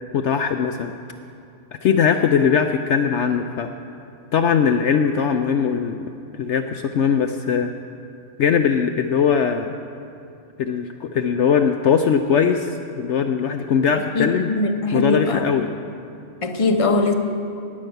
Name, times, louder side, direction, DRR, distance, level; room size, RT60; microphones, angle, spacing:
voice 1, 0.1-0.9 1.8-3.7 4.3-6.0 6.3-7.7 8.4-9.7 10.6-14.5 14.9-15.6, left 7 dB, 65° left, 6 dB, 0.8 m, -20 dB
voice 2, 14.1-15.4 16.4-17.1, left 2 dB, 25° left, 4 dB, 0.8 m, -21 dB
18.5 x 6.3 x 7.8 m, 2.6 s
omnidirectional pair, 1.5 m